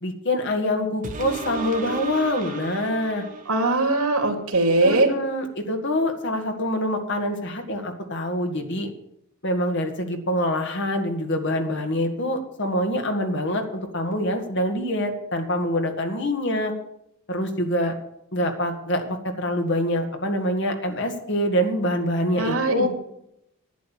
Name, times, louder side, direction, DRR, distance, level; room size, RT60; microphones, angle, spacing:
voice 1, 0.0-3.2 4.8-8.9 9.4-16.7 17.3-17.9 18.3-22.9, left 1 dB, 55° left, 5 dB, 2.0 m, -25 dB
sound 1, 1.0-4.0 4.5-4.6, right 4 dB, 40° right, 1.4 m, -34 dB
voice 2, 3.5-5.1 22.4-22.9, right 2 dB, 90° right, 4 dB, 2.6 m, -21 dB
11.5 x 9.4 x 7.4 m, 0.78 s
head